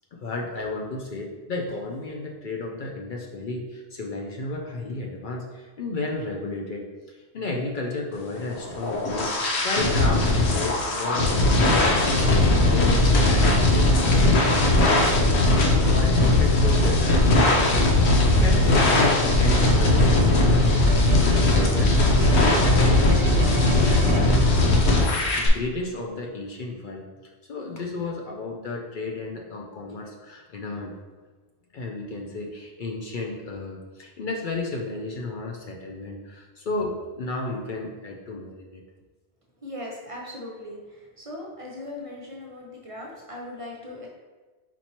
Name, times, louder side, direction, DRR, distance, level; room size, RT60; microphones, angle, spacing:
voice 1, 0.1-12.0 12.3-14.5 14.8-22.0 22.3-27.1 27.5-31.0 31.7-38.8, left 2 dB, 55° left, 0 dB, 0.6 m, -33 dB
sound 1, 8.5-25.5, left 2 dB, 80° left, 1.0 m, -19 dB
sound 2, 19.6-25.3, right 3 dB, 75° right, 0.8 m, -36 dB
voice 2, 39.6-40.8 41.2-44.1, left 1 dB, 35° right, -3 dB, 0.6 m, -38 dB
4.3 x 4.3 x 2.9 m, 1.3 s
omnidirectional pair, 1.1 m